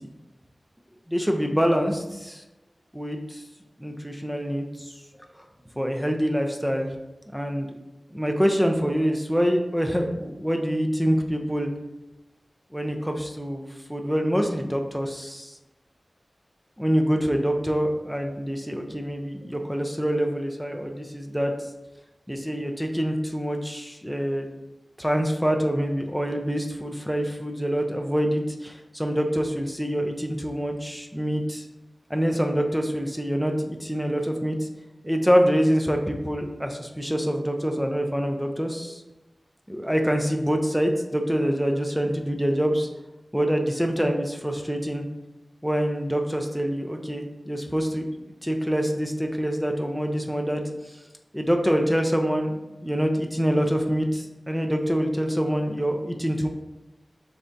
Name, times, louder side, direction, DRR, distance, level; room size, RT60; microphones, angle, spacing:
voice 1, 1.1-2.4 2.9-3.4 3.8-4.9 5.8-6.9 7.3-7.7 8.1-11.7 12.7-15.5 16.8-21.5 22.3-24.5 25.0-31.6 32.1-34.7 35.0-39.0 39.7-42.9 43.3-45.0 45.6-48.1 48.4-50.6 50.9-51.0 51.3-56.5, equal, 5° right, 3 dB, 0.4 m, -25 dB
3.3 x 2.6 x 3.8 m, 1.0 s
wide cardioid pair, 70°, 0 cm